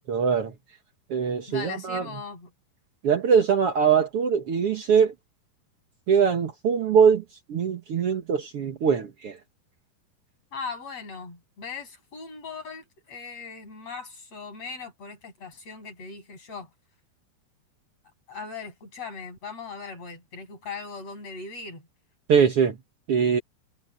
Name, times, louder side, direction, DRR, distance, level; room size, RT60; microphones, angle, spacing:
voice 1, 0.1-0.5 1.1-2.0 3.0-5.1 6.1-7.2 7.5-9.4 22.3-22.7 23.1-23.4, right 6 dB, 90° right, 1.2 m, -22 dB
voice 2, 1.5-2.5 10.5-16.7 18.3-21.9, left 5 dB, 35° left, 8.8 m, -39 dB
omnidirectional pair, 4.9 m